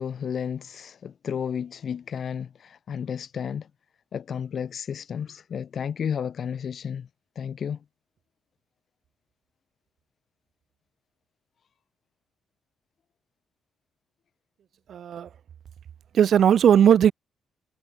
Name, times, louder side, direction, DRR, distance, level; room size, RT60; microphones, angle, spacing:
voice 1, 0.0-3.7 4.1-7.1 7.4-7.8, left 7 dB, 55° left, 5.4 m, -32 dB
voice 2, 14.9-15.3 16.1-17.1, right 9 dB, 60° right, 0.6 m, -18 dB
cardioid pair, 90°, 0 cm